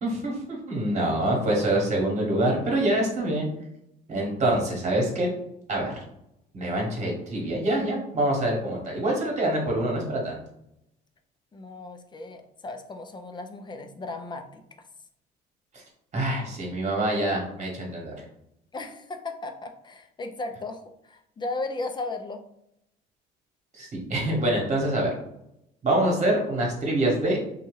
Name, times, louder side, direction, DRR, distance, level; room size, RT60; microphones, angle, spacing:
voice 1, 0.0-3.5 4.1-5.3 5.7-6.0 6.5-10.4 15.7-15.8 16.1-18.1 23.7-25.1 25.8-27.4, right 1 dB, 35° right, -1 dB, 1.2 m, -25 dB
voice 2, 11.5-14.6 18.7-22.4, left 2 dB, 25° left, 6 dB, 0.5 m, -36 dB
2.7 x 2.3 x 3.1 m, 0.79 s
supercardioid pair, 90°, 19 cm